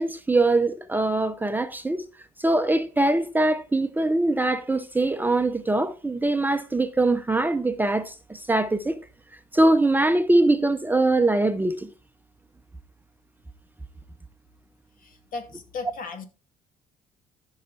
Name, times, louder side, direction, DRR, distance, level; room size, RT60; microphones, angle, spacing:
voice 1, 0.0-2.0 2.4-8.9 9.5-11.9, right 2 dB, 10° right, 0.7 m, -22 dB
voice 2, 15.0-16.2, left 4 dB, 55° left, 2.6 m, -36 dB
13.5 x 5.7 x 4.2 m
cardioid pair, 110°, 17 cm